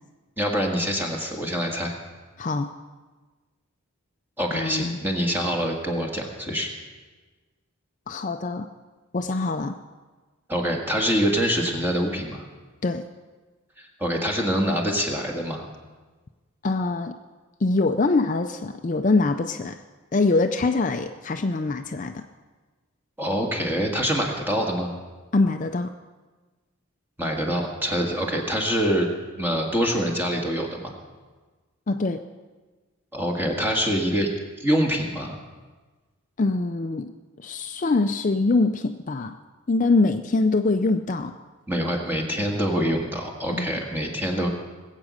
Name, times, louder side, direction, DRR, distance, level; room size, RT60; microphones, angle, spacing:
voice 1, 0.4-1.9 4.4-6.7 10.5-12.4 13.8-15.6 23.2-25.0 27.2-29.1 29.4-31.0 33.1-34.3 34.6-35.4 41.7-44.5, equal, 10° right, 0 dB, 1.8 m, -25 dB
voice 2, 2.4-2.7 4.5-5.0 8.1-8.7 9.1-9.7 12.8-13.1 16.6-17.2 17.6-19.8 20.1-22.2 25.3-25.9 31.9-32.2 36.4-37.1 37.4-39.4 39.7-41.3 43.5-43.8, left 3 dB, 35° left, 6 dB, 0.4 m, -23 dB
20.5 x 8.4 x 6.4 m, 1.3 s
head